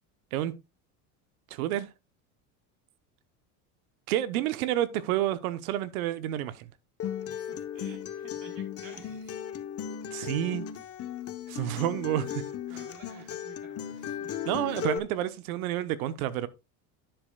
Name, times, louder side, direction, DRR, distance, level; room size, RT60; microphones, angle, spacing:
voice 1, 1.5-1.9 4.1-6.6 10.1-10.6 11.5-12.4 14.5-16.5, right 13 dB, 85° right, 1.0 m, -29 dB
Acoustic guitar, 7.0-15.0, left 9 dB, 35° left, 0.9 m, -36 dB
voice 2, 7.2-9.4 12.7-14.9, right 5 dB, 50° right, 3.6 m, -51 dB
10.5 x 7.9 x 2.3 m
supercardioid pair, 105°, 42 cm